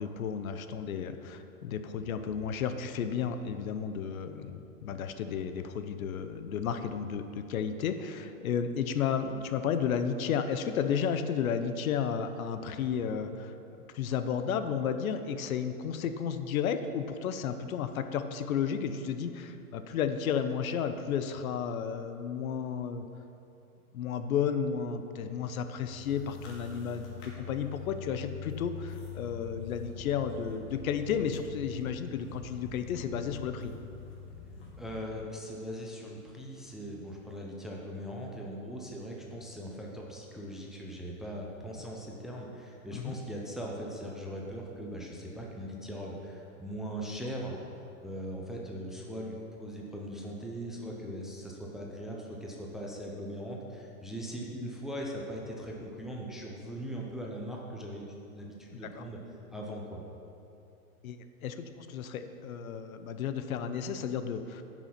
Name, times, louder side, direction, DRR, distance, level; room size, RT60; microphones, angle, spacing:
voice 1, 0.0-13.5 13.9-23.1 23.9-33.7 42.9-43.2 58.7-59.1 61.0-64.6, left 7 dB, 70° left, 9 dB, 0.9 m, -33 dB
sound 1, 25.9-35.0, left 7 dB, 45° left, 2.4 m, -44 dB
voice 2, 34.8-47.5 48.0-58.0 58.3-59.2 59.5-60.0, equal, ahead, -2 dB, 0.6 m, -40 dB
10.5 x 6.0 x 5.8 m, 2.8 s
hypercardioid pair, 135°, 44 cm